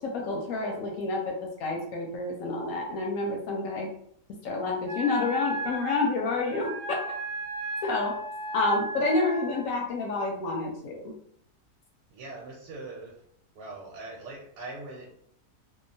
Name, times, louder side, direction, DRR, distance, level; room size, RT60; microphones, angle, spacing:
voice 1, 0.0-3.9 4.4-7.0 7.8-8.1 8.5-11.1, left 3 dB, 70° left, 0 dB, 0.8 m, -29 dB
Wind instrument woodwind instrument, 4.9-9.7, right 1 dB, 55° right, 0.9 m, -36 dB
voice 2, 12.1-13.2 13.5-15.1, right 2 dB, 85° right, -2 dB, 1.2 m, -41 dB
2.8 x 2.1 x 2.6 m, 0.67 s
omnidirectional pair, 1.8 m